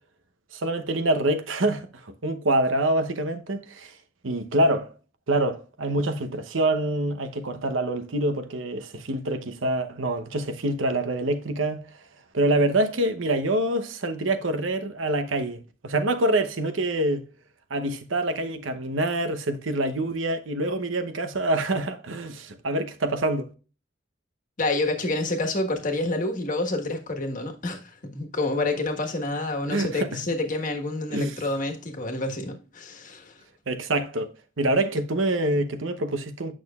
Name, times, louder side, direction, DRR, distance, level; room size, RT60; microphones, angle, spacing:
voice 1, 0.5-3.9 4.2-4.9 5.3-11.9 12.3-17.2 17.7-23.5 29.7-30.2 31.1-31.3 33.7-36.5, right 1 dB, 80° right, 0.9 m, -26 dB
voice 2, 24.6-33.3, left 2 dB, 45° left, 1.4 m, -28 dB
8.9 x 6.3 x 2.4 m
head